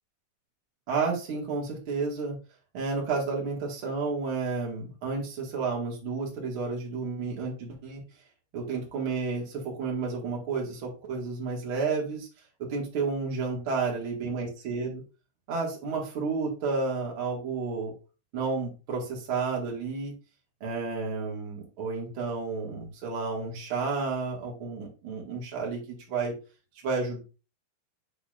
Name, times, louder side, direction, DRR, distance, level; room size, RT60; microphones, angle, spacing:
voice 1, 0.9-2.4 2.7-8.0 8.5-12.3 12.6-15.0 15.5-17.9 18.3-20.2 20.6-26.3 26.8-27.2, right 4 dB, 40° right, -2 dB, 2.0 m, -31 dB
8.8 x 4.7 x 2.6 m, 0.33 s
omnidirectional pair, 5.0 m